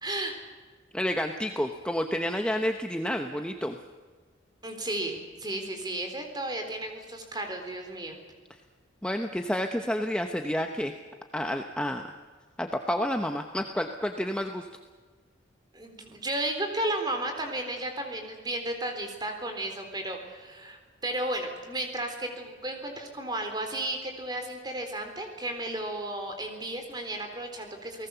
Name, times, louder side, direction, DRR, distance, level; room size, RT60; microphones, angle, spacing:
voice 1, 0.0-0.3 4.6-8.2 15.7-28.1, right 1 dB, 20° right, 5 dB, 3.8 m, -33 dB
voice 2, 0.9-3.8 9.0-10.9 11.3-12.0 12.6-14.7, equal, 5° left, 4 dB, 1.0 m, -29 dB
29.5 x 19.0 x 7.0 m, 1.5 s
head